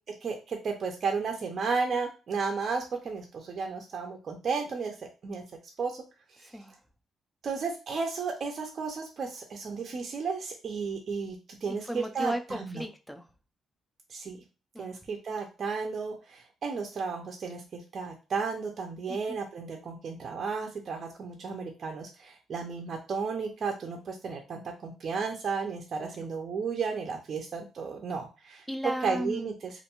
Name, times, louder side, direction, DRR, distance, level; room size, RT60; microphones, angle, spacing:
voice 1, 0.2-4.9 5.2-5.4 5.8-6.0 7.4-12.8 14.1-14.4 14.8-28.6 29.0-29.7, right 5 dB, 50° right, 2 dB, 0.5 m, -33 dB
voice 2, 6.4-6.8 11.7-13.3 14.7-15.0 19.1-19.4 26.0-26.1 28.7-29.6, equal, 5° left, 6 dB, 0.5 m, -35 dB
2.5 x 2.2 x 2.9 m, 0.32 s
cardioid pair, 90°, 0 cm